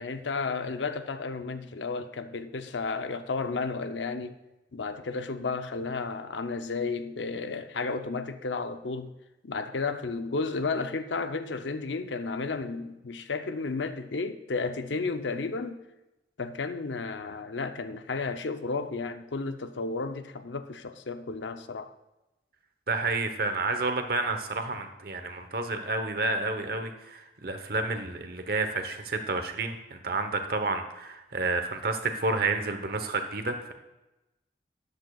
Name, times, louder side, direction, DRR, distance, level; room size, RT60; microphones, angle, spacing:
voice 1, 0.0-4.4 4.7-9.1 9.4-15.8 16.4-21.9, left 4 dB, 85° left, 0.7 m, -33 dB
voice 2, 22.9-33.7, right 3 dB, 55° right, 1.0 m, -30 dB
13.0 x 10.5 x 2.4 m
head